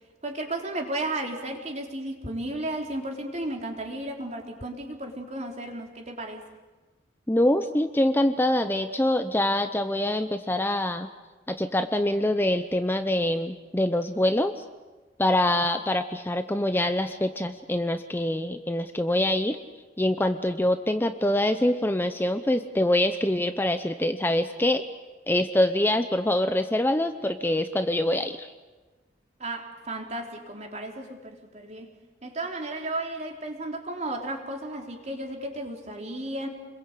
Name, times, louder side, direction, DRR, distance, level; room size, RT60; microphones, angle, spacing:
voice 1, 0.2-6.4 29.4-31.9 32.2-36.5, right 1 dB, 40° right, 2 dB, 3.8 m, -34 dB
voice 2, 7.3-11.1 11.5-14.5 15.2-19.6 20.0-24.8 25.3-28.5, left 1 dB, 10° left, 8 dB, 0.8 m, -25 dB
29.5 x 22.5 x 8.3 m, 1.3 s
head